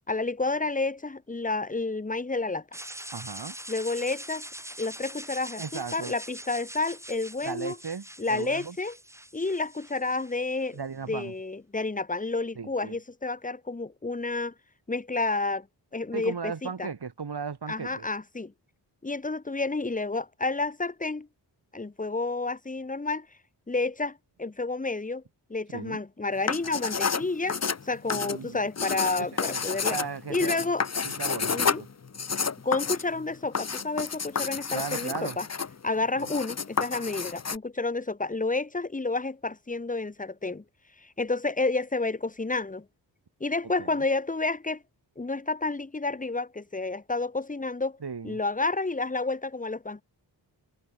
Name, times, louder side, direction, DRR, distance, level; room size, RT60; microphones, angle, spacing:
voice 1, 0.1-2.6 3.7-4.5 4.8-7.8 8.2-9.0 9.3-10.8 11.1-14.5 14.9-15.7 15.9-16.9 17.7-18.5 19.0-21.3 21.7-23.3 23.7-25.2 25.5-27.6 27.8-30.0 30.3-30.8 31.5-31.8 32.6-35.5 35.8-40.6 41.0-42.8 43.4-44.8 45.2-48.0 48.2-50.0, left 3 dB, 20° left, 1.3 m, -30 dB
sound 1, 2.7-10.8, right 1 dB, 5° right, 4.7 m, -43 dB
voice 2, 3.1-3.6 5.6-6.1 7.4-8.8 10.7-11.3 12.6-13.0 16.1-18.1 25.7-26.0 28.1-28.6 29.5-29.6 29.9-30.6 31.0-31.9 34.7-35.4 36.2-36.3 43.8-44.0 48.0-48.4, right 5 dB, 60° right, 7.0 m, -36 dB
sound 2, 26.4-37.6, left 5 dB, 35° left, 1.1 m, -30 dB
cardioid pair, 60°, 44 cm